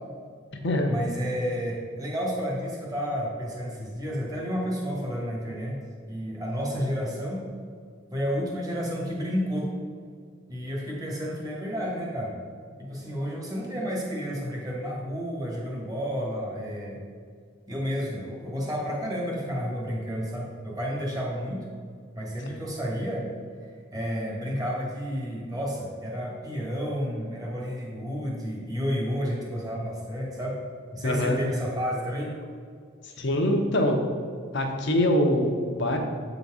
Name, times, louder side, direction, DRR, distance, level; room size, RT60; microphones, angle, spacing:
voice 1, 0.9-5.8 6.1-7.4 8.1-9.7 10.5-12.3 12.8-17.0 17.7-21.6 22.1-23.3 23.9-30.6 30.9-32.3, equal, 20° right, -3 dB, 1.4 m, -31 dB
voice 2, 31.0-31.4 33.0-34.0 34.5-36.0, left 1 dB, 60° left, 3 dB, 0.9 m, -24 dB
8.2 x 4.0 x 4.9 m, 2.1 s
head